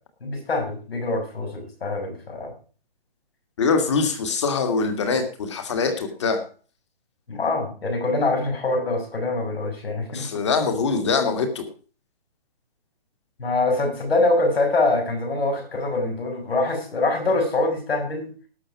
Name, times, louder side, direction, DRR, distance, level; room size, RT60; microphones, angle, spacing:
voice 1, 0.2-2.5 7.3-10.3 13.4-18.3, left 2 dB, 80° left, 2 dB, 6.1 m, -24 dB
voice 2, 3.6-6.4 10.1-11.6, left 4 dB, 30° left, 7 dB, 1.9 m, -23 dB
19.0 x 6.6 x 4.6 m, 0.39 s
hypercardioid pair, 180°, 30 cm